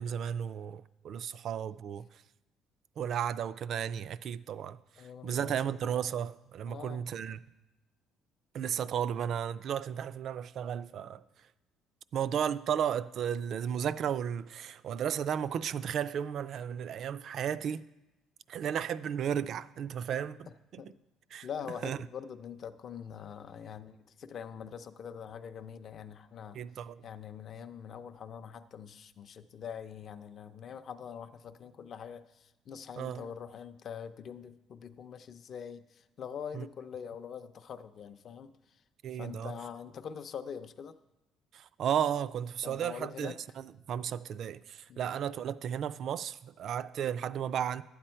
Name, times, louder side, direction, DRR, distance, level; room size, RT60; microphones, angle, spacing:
voice 1, 0.0-2.1 3.0-4.8 5.2-7.4 8.5-11.2 12.1-17.8 18.5-20.5 20.7-20.8 21.3-21.5 21.8-22.0 26.5-27.0 33.0-33.3 36.5-36.7 39.0-39.5 41.5-47.8, right 8 dB, 50° right, 0.3 m, -34 dB
voice 2, 5.0-5.7 6.7-7.0 20.8-21.0 21.4-26.6 27.0-38.5 39.1-40.9 42.6-43.4 44.9-45.1, left 7 dB, 45° left, 0.5 m, -44 dB
12.0 x 8.7 x 4.4 m
cardioid pair, 135°, 0 cm